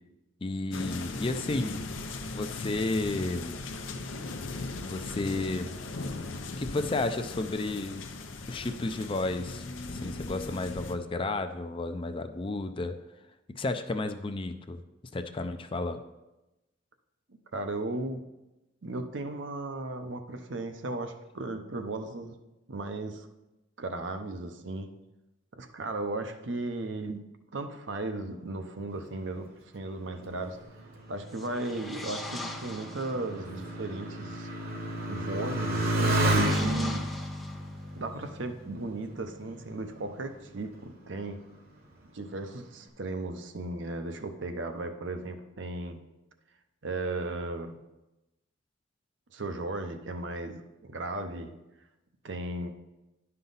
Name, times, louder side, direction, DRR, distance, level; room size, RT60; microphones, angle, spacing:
voice 1, 0.4-1.9 2.3-3.6 4.8-5.7 6.6-8.1 8.5-9.6 9.9-13.0 13.5-14.8 15.1-16.0, left 2 dB, 25° left, 9 dB, 0.4 m, -32 dB
sound 1, 0.7-11.0, left 3 dB, 85° left, 0.7 m, -38 dB
voice 2, 17.5-18.2 18.8-22.3 22.7-23.3 23.8-24.9 25.5-27.2 27.5-29.5 29.7-30.6 31.1-34.5 35.1-37.0 38.0-41.4 42.1-46.0 46.8-47.8 49.3-51.5 52.2-52.7, right 2 dB, 70° right, 7 dB, 0.7 m, -36 dB
Motorcycle, 30.3-39.3 40.0-40.6, right 1 dB, 50° right, 1.1 m, -31 dB
sound 2, 31.2-33.3 35.7-38.0, left 2 dB, ahead, 0.8 m, -42 dB
10.5 x 5.6 x 4.0 m, 0.99 s
head